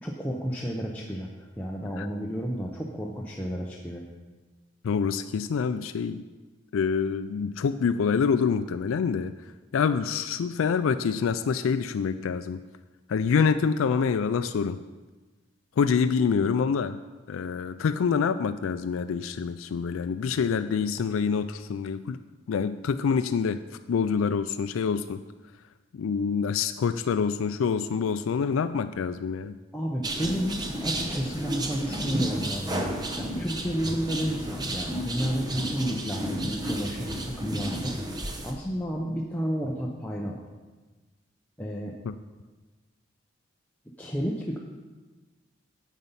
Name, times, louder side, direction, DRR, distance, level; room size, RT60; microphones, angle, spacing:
voice 1, 0.0-4.0 29.7-40.4 41.6-41.9 44.0-44.6, equal, 5° left, -3 dB, 0.7 m, -31 dB
voice 2, 4.8-6.2 6.7-9.3 9.7-12.6 13.1-14.8 15.8-17.0 17.3-22.2 22.5-23.6 23.9-25.2 25.9-29.6 42.0-42.1, left 6 dB, 80° left, 11 dB, 0.4 m, -26 dB
sound 1, 30.0-38.5, right 1 dB, 20° right, 0.9 m, -32 dB
9.3 x 8.2 x 5.6 m, 1.3 s
head